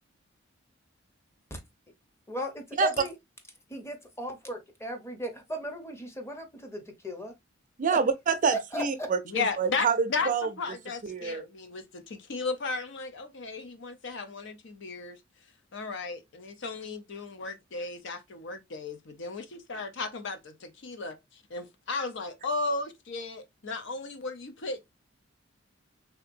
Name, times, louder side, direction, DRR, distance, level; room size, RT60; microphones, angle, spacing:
voice 1, 2.3-3.1 3.7-7.3 8.5-8.8, equal, 15° left, 0.7 m, -36 dB
voice 2, 7.8-10.5 11.0-11.4, right 5 dB, 40° right, 0.5 m, -27 dB
voice 3, 9.3-15.2 15.7-24.8, left 4 dB, 65° left, 0.6 m, -35 dB
3.3 x 2.8 x 2.5 m
head